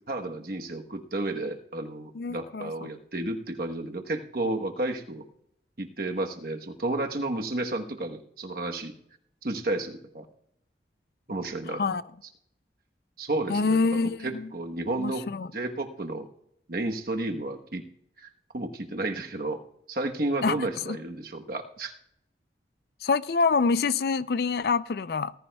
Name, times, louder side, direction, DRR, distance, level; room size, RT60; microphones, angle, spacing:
voice 1, 0.1-5.2 5.8-8.9 9.4-10.2 11.3-11.8 13.2-15.2 15.5-16.3 16.7-17.8 18.2-19.6 19.9-21.9, right 2 dB, 55° right, 1.1 m, -32 dB
voice 2, 2.2-2.7 11.7-12.0 13.5-14.5 15.0-15.5 20.4-20.6 20.9-21.0 23.0-25.3, left 4 dB, 60° left, 0.4 m, -26 dB
19.0 x 14.5 x 2.3 m
head